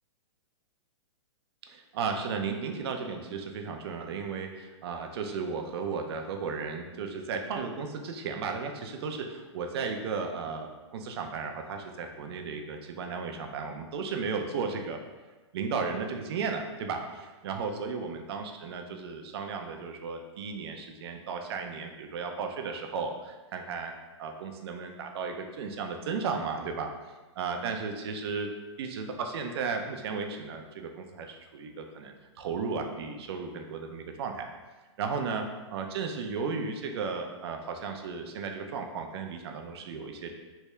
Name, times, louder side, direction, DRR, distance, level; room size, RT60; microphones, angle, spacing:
voice 1, 1.7-15.0 15.5-23.9 24.2-26.9 27.4-28.5 28.8-34.5 35.0-35.5 35.7-40.3, right 5 dB, 55° right, 4 dB, 0.5 m, -34 dB
3.3 x 2.7 x 3.2 m, 1.2 s
hypercardioid pair, 140°, 16 cm